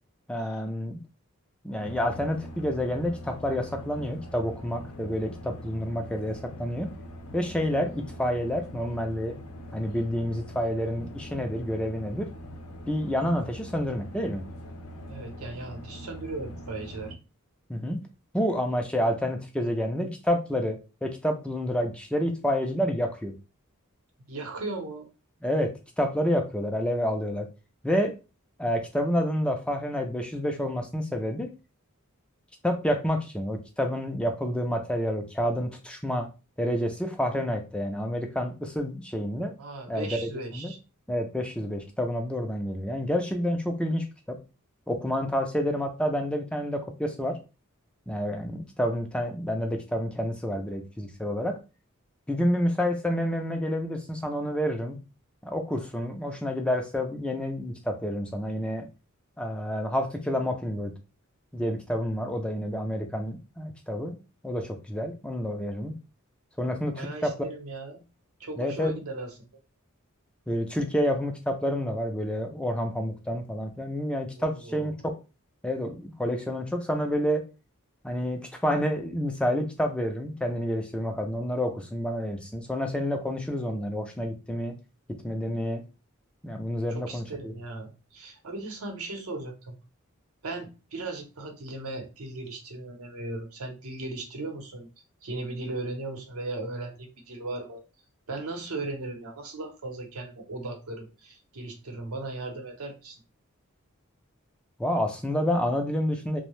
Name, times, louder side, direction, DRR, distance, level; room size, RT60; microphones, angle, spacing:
voice 1, 0.3-1.0 1.6-6.9 7.3-9.4 9.7-12.3 12.9-14.4 17.7-18.0 18.3-23.3 25.4-25.7 26.0-27.5 27.8-28.1 28.6-31.5 32.6-36.3 36.6-39.5 39.9-40.7 41.1-44.4 44.9-47.4 48.1-51.6 52.3-55.0 55.4-58.9 59.4-60.9 61.5-64.1 64.4-65.9 66.6-67.3 68.6-68.9 70.5-74.9 75.6-77.4 78.0-84.7 85.2-85.8 86.4-87.5 104.8-106.4, equal, 5° left, 4 dB, 0.3 m, -29 dB
sound 1, 1.8-17.1, equal, 80° left, 0.5 m, -43 dB
voice 2, 15.0-17.2 24.3-25.1 39.6-40.8 66.9-68.0 68.4-69.3 74.4-74.9 86.9-89.8 90.4-94.9 95.2-97.8 98.3-103.2, right 2 dB, 85° right, 3 dB, 0.8 m, -37 dB
2.6 x 2.1 x 3.0 m, 0.30 s
head